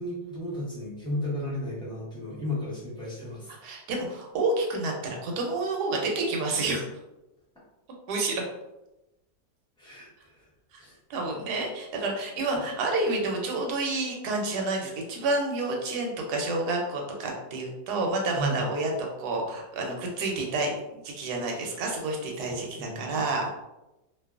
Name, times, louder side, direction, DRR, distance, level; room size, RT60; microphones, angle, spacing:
voice 1, 0.0-3.5 9.8-10.5 10.8-11.0 18.3-18.6 22.4-23.2, left 1 dB, 5° left, -8 dB, 0.5 m, -34 dB
voice 2, 3.6-6.8 8.1-8.4 10.7-10.8 11.1-18.9 19.2-20.7 21.0-23.7, right 2 dB, 70° right, 0 dB, 1.1 m, -29 dB
2.7 x 2.3 x 2.3 m, 0.96 s
omnidirectional pair, 1.9 m